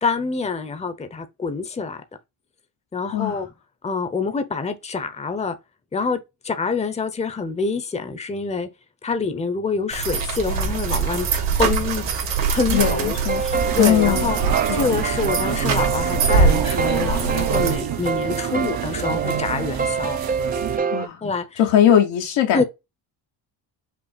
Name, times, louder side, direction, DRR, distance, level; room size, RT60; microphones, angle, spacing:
voice 1, 0.0-2.0 2.9-3.5 3.8-5.6 5.9-6.2 6.4-8.7 9.0-11.3 11.6-12.1 12.5-14.4 14.7-20.2 21.2-21.6 22.5-22.6, left 4 dB, 15° left, 0.8 m, -26 dB
sound 1, 9.9-17.8, right 5 dB, 70° right, 2.0 m, -23 dB
voice 2, 12.7-13.4 13.8-14.3 14.7-14.9 20.9-21.2 21.6-22.6, left 10 dB, 80° left, 1.3 m, -19 dB
sound 2, 12.7-21.1, right 5 dB, 20° right, 0.4 m, -27 dB
sound 3, 13.6-20.8, right 8 dB, 55° right, 0.9 m, -28 dB
5.9 x 2.1 x 4.1 m
cardioid pair, 100°, 45 cm